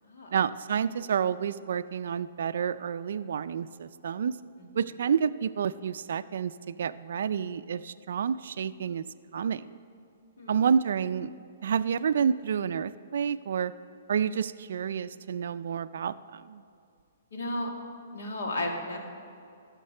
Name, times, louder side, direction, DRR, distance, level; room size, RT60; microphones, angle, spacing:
voice 1, 0.3-4.4 4.8-9.0 9.3-9.8 10.5-11.3 11.6-13.7 14.1-16.6, right 7 dB, 55° right, 13 dB, 0.3 m, -29 dB
voice 2, 17.3-17.7 18.1-19.0, left 1 dB, 80° left, 1 dB, 2.1 m, -33 dB
14.5 x 6.5 x 6.5 m, 2.4 s
hypercardioid pair, 180°, 0 cm